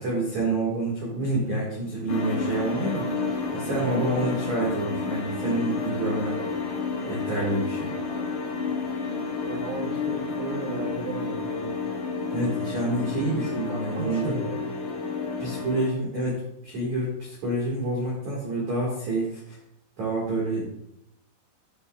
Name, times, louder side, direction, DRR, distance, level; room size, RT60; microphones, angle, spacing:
voice 1, 0.0-6.4 7.1-7.9 12.3-14.4 15.4-19.6 20.0-20.7, right 2 dB, 50° right, -5 dB, 2.4 m, -28 dB
sound 1, 2.1-15.9, left 4 dB, 70° left, 1.7 m, -30 dB
voice 2, 3.7-4.4 9.4-11.8 13.7-14.7, right 4 dB, 90° right, -1 dB, 1.9 m, -35 dB
14.0 x 6.9 x 2.4 m, 0.77 s
omnidirectional pair, 5.7 m